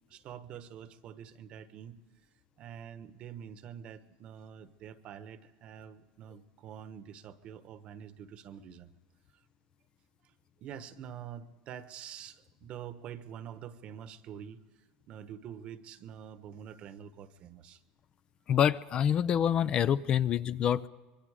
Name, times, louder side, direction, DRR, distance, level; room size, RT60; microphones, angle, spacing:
voice 1, 0.1-2.0 2.6-8.9 10.6-14.6 15.1-17.8, right 9 dB, 45° right, 12 dB, 1.2 m, -46 dB
voice 2, 18.5-20.9, left 9 dB, 35° left, 15 dB, 0.5 m, -26 dB
25.5 x 22.5 x 5.0 m, 1.3 s
supercardioid pair, 140°, 3 cm